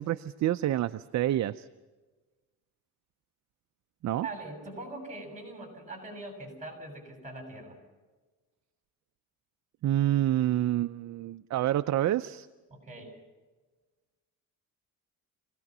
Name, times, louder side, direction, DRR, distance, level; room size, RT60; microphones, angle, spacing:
voice 1, 0.0-1.7 4.0-4.3 9.8-12.5, right 13 dB, 50° right, 11 dB, 0.6 m, -28 dB
voice 2, 4.1-7.8 12.7-13.1, right 2 dB, 20° right, 3 dB, 7.0 m, -42 dB
26.5 x 18.0 x 6.1 m, 1.3 s
cardioid pair, 120°, 35 cm